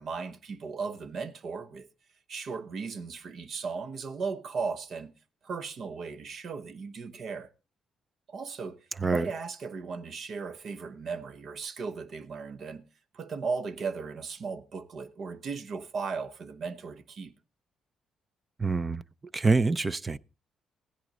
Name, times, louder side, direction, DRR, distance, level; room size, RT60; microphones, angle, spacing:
voice 1, 0.0-1.9 2.3-5.1 5.4-7.5 8.3-12.8 13.1-17.3, right 5 dB, 60° right, 1.1 m, -36 dB
voice 2, 18.6-19.0 19.3-20.2, right 3 dB, 25° right, 0.6 m, -25 dB
16.5 x 10.5 x 3.8 m
cardioid pair, 90°, 0 cm